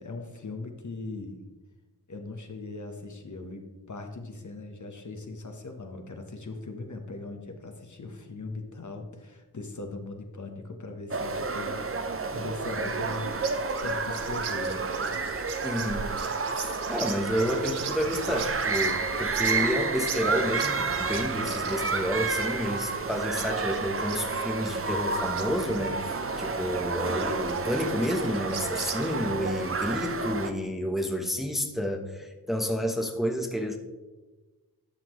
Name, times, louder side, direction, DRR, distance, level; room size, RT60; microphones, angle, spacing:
voice 1, 0.0-1.4 2.1-13.4 13.8-15.2 17.0-17.2 26.4-26.7, left 3 dB, 50° left, 4 dB, 1.2 m, -40 dB
sound 1, 11.1-30.5, right 4 dB, 35° right, 0.7 m, -30 dB
sound 2, 12.8-29.2, right 7 dB, 85° right, 0.7 m, -42 dB
voice 2, 15.6-16.1 16.5-33.8, equal, ahead, 3 dB, 1.0 m, -30 dB
12.0 x 5.9 x 3.1 m, 1.2 s
cardioid pair, 50°, 39 cm